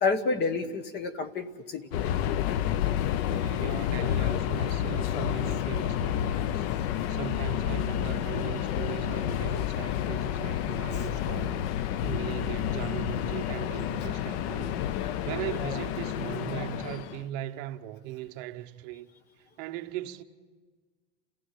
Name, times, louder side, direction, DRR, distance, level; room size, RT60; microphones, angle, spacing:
voice 1, 0.0-1.9 6.7-6.9 10.9-11.0, left 4 dB, 25° left, 1.1 m, -29 dB
Subway metro underground, 1.9-17.2, left 10 dB, 55° left, 0.7 m, -30 dB
voice 2, 3.3-6.7 7.1-14.8 15.2-19.1 19.6-20.2, right 14 dB, 45° right, 1.0 m, -39 dB
28.5 x 15.5 x 10.0 m
supercardioid pair, 160°, 39 cm